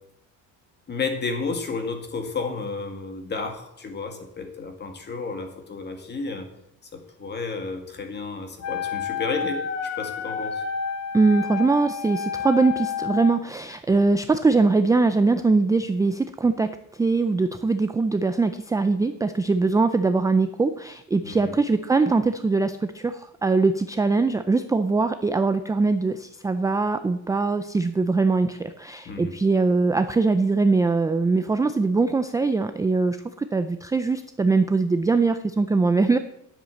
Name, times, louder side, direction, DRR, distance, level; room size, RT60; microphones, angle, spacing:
voice 1, 0.9-6.5 6.9-9.6 10.0-10.6 21.2-21.5 29.1-29.3, left 4 dB, 30° left, 5 dB, 2.1 m, -32 dB
Wind instrument woodwind instrument, 8.6-13.4, left 6 dB, 50° left, 1.3 m, -30 dB
voice 2, 11.1-36.2, right 3 dB, 10° right, 9 dB, 0.4 m, -22 dB
10.0 x 7.7 x 7.7 m, 0.78 s
cardioid pair, 150°, 33 cm